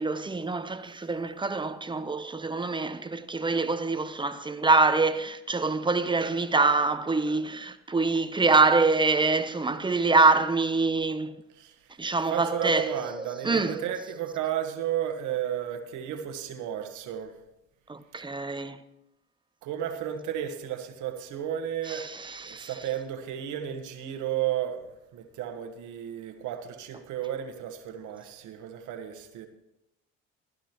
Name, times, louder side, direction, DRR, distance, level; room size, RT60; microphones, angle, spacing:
voice 1, 0.0-11.3 12.0-13.8 17.9-18.8 21.9-22.7, right 3 dB, 15° right, 0.8 m, -25 dB
voice 2, 12.3-17.3 19.6-22.1 22.4-24.9 25.1-29.5, right 10 dB, 70° right, 1.5 m, -33 dB
15.0 x 11.5 x 3.0 m
supercardioid pair, 85°, 31 cm